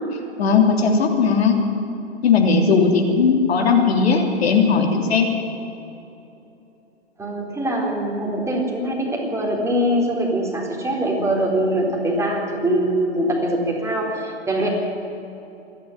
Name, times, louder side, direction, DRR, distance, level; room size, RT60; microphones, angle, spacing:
voice 1, 0.4-1.6 2.2-5.3, left 5 dB, 65° left, 3 dB, 3.2 m, -17 dB
voice 2, 7.2-14.7, right 1 dB, 10° right, -1 dB, 4.0 m, -23 dB
26.0 x 11.0 x 10.0 m, 2.9 s
figure-of-eight pair, 115°, 34 cm